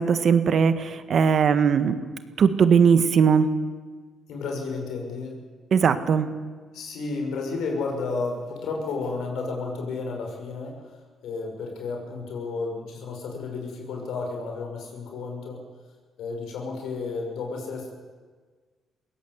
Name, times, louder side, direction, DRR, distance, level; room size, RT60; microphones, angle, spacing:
voice 1, 0.0-1.9 2.4-3.5 5.7-6.3, right 6 dB, 55° right, 11 dB, 1.6 m, -19 dB
voice 2, 4.3-5.4 6.7-10.9 11.2-15.6 16.2-17.9, left 4 dB, 80° left, 2 dB, 6.1 m, -32 dB
22.0 x 17.5 x 8.2 m, 1.5 s
cardioid pair, 90°, 0 cm